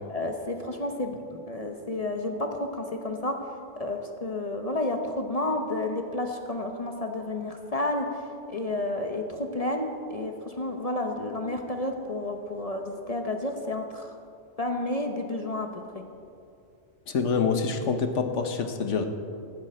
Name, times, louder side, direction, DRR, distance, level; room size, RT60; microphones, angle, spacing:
voice 1, 0.1-3.5 3.8-14.1 14.6-16.0, left 2 dB, 35° left, 4 dB, 0.9 m, -31 dB
voice 2, 17.1-19.1, left 5 dB, 80° left, 6 dB, 1.4 m, -26 dB
15.5 x 12.5 x 4.3 m, 2.4 s
omnidirectional pair, 1.2 m